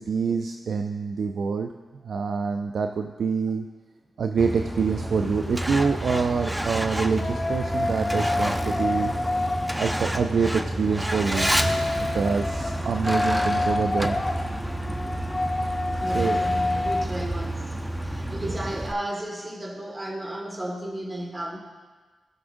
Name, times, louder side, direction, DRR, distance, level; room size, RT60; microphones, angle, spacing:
voice 1, 0.0-1.7 2.0-3.7 4.2-9.1 9.8-11.5 12.0-14.2 16.1-16.4 18.3-18.4, right 5 dB, 70° right, 6 dB, 0.4 m, -26 dB
Truck, 4.4-18.9, right 1 dB, 5° right, 0.7 m, -29 dB
sound 1, 7.2-10.3 11.2-17.1, left 2 dB, 30° left, 0.5 m, -28 dB
voice 2, 14.8-15.3 16.0-17.7 18.0-21.6, right 1 dB, 25° right, 0 dB, 1.7 m, -34 dB
18.0 x 6.1 x 2.6 m, 1.4 s
cardioid pair, 55°, 0 cm